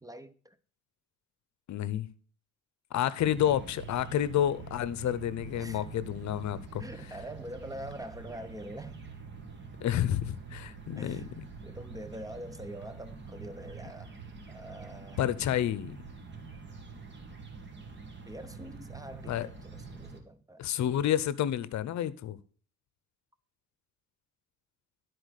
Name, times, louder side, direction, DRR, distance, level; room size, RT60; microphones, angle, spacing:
voice 1, 0.0-0.6 5.6-5.9 6.8-9.0 11.0-11.3 11.6-14.1 14.5-15.2 18.3-20.7, right 1 dB, 10° right, 0.7 m, -44 dB
voice 2, 1.7-2.1 2.9-6.8 9.8-11.2 15.2-16.0 19.3-19.5 20.6-22.4, left 11 dB, 65° left, 0.7 m, -29 dB
sound 1, 3.2-20.2, right 4 dB, 35° right, 2.1 m, -46 dB
12.5 x 4.5 x 6.5 m
cardioid pair, 90°, 30 cm